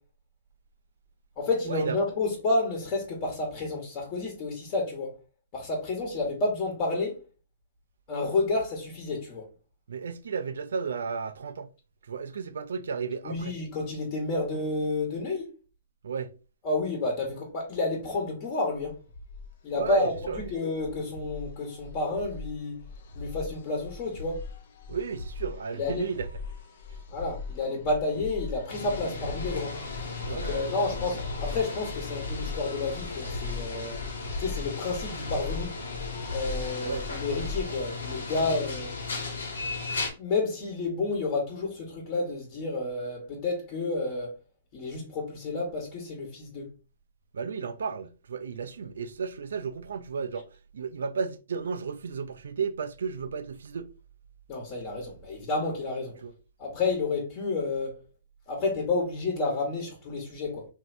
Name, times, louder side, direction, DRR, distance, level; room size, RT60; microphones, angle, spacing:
voice 1, 1.4-5.2 5.5-7.2 8.1-9.5 13.2-15.5 16.6-19.0 19.6-20.1 20.5-22.8 23.1-24.4 25.7-26.0 27.1-29.8 30.3-34.0 34.4-35.7 36.3-38.9 40.2-44.3 44.7-46.7 54.5-56.2 56.6-58.0 58.5-60.7, left 3 dB, 40° left, 1.1 m, -30 dB
voice 2, 9.9-11.7 12.0-13.6 16.0-16.3 19.7-20.5 24.9-26.3 26.9-27.0 30.2-31.0 36.8-37.0 47.3-50.5 50.7-53.9 56.2-56.3, right 5 dB, 75° right, 0.4 m, -33 dB
sound 1, 18.8-37.6, left 3 dB, 65° left, 0.7 m, -40 dB
sound 2, 28.7-40.1, left 4 dB, 80° left, 1.1 m, -36 dB
3.2 x 2.6 x 2.5 m
hypercardioid pair, 130°, 0 cm